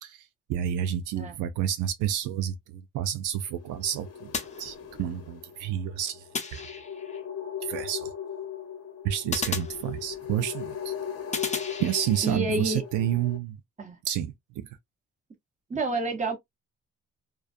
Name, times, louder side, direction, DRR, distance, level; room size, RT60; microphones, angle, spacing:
voice 1, 0.0-4.3 4.6-6.2 6.5-6.6 7.6-8.1 9.0-10.9 11.8-13.6 14.0-14.7, right 10 dB, 85° right, 0.5 m, -30 dB
sound 1, 3.5-13.4, left 9 dB, 55° left, 0.8 m, -38 dB
sound 2, 4.3-5.3 6.3-7.2 9.3-10.4 11.3-12.4, left 4 dB, 25° left, 0.6 m, -35 dB
voice 2, 12.2-12.8 13.8-14.0 15.7-16.4, right 2 dB, 25° right, 1.0 m, -28 dB
2.3 x 2.2 x 2.5 m
cardioid pair, 90°, 30 cm